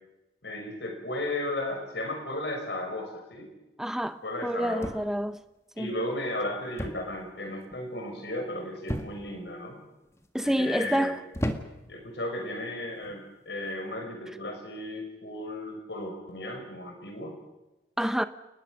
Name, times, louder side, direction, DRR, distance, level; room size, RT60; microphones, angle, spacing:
voice 1, 0.4-3.5 4.2-4.9 5.7-9.8 10.4-11.1 11.9-17.3, left 1 dB, 75° left, 6.0 m, -35 dB
voice 2, 3.8-5.4 5.8-5.9 10.3-11.2 18.0-18.2, equal, 5° right, 0.9 m, -28 dB
sound 1, 4.8-5.3 6.8-7.2 7.5-7.9 8.9-9.4 10.1-10.5 11.3-12.0 12.9-13.2, equal, 15° left, 1.7 m, -34 dB
30.0 x 20.0 x 6.5 m
head